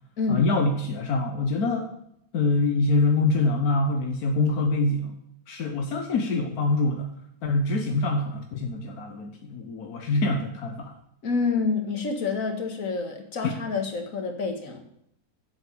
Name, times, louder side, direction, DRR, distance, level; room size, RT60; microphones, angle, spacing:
voice 1, 0.3-1.9 2.3-5.2 5.5-7.1 7.4-10.9 13.4-13.6, left 2 dB, 85° left, 4 dB, 1.5 m, -25 dB
voice 2, 11.2-14.8, left 4 dB, 60° left, 4 dB, 2.0 m, -28 dB
8.1 x 8.0 x 6.8 m, 0.75 s
omnidirectional pair, 1.6 m